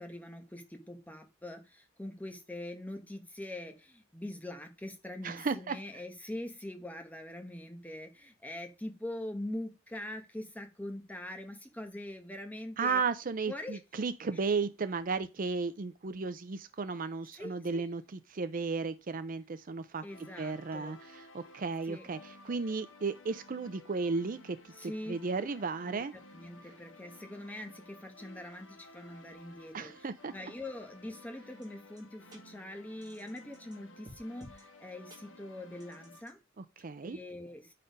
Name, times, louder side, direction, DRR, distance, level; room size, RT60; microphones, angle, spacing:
voice 1, 0.0-13.0 13.5-13.8 14.3-14.6 17.3-17.8 20.0-21.0 21.8-22.1 24.8-25.2 25.8-26.0 26.3-36.4 37.0-37.7, left 1 dB, 10° left, 1.2 m, -43 dB
voice 2, 5.2-5.8 12.8-18.0 18.3-20.0 20.4-26.1 29.7-30.3 36.6-37.2, right 4 dB, 45° right, 0.5 m, -34 dB
sound 1, 20.1-36.2, left 2 dB, 70° left, 1.2 m, -55 dB
sound 2, 31.6-31.7 32.0-32.1 32.3-32.4 33.0-33.8 34.1-34.6 35.1-35.2 35.8-36.3, equal, 20° right, 2.2 m, -53 dB
10.0 x 4.2 x 5.3 m
head